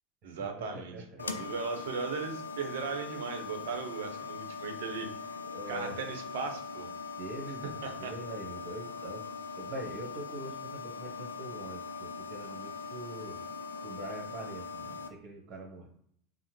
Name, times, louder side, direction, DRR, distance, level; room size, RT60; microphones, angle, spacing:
voice 1, 0.2-5.1 5.7-6.9 7.6-8.1, right 5 dB, 70° right, 5 dB, 0.8 m, -37 dB
sound 1, 1.2-15.1, left 5 dB, 90° left, 0.3 m, -41 dB
voice 2, 5.4-5.9 7.2-9.2 9.5-13.4 13.8-15.9, right 1 dB, 40° right, -1 dB, 1.3 m, -43 dB
5.4 x 2.1 x 3.2 m, 0.66 s
hypercardioid pair, 85°, 0 cm